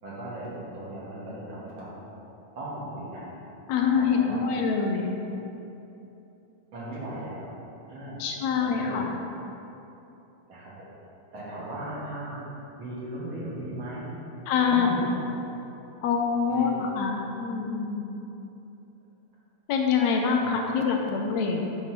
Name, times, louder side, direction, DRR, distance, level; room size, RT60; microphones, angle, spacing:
voice 1, 0.0-1.9 2.5-3.3 3.9-4.4 6.7-7.4 7.9-8.2 8.6-9.0 10.5-10.9 11.3-12.4 12.8-14.1 14.7-15.2 16.5-16.8 20.4-20.5, right 1 dB, 50° right, -8 dB, 2.0 m, -37 dB
voice 2, 3.7-5.1 8.2-9.1 14.5-14.9 16.0-18.1 19.7-21.6, left 6 dB, 75° left, 2 dB, 1.8 m, -25 dB
9.3 x 3.4 x 5.8 m, 3.0 s
omnidirectional pair, 3.4 m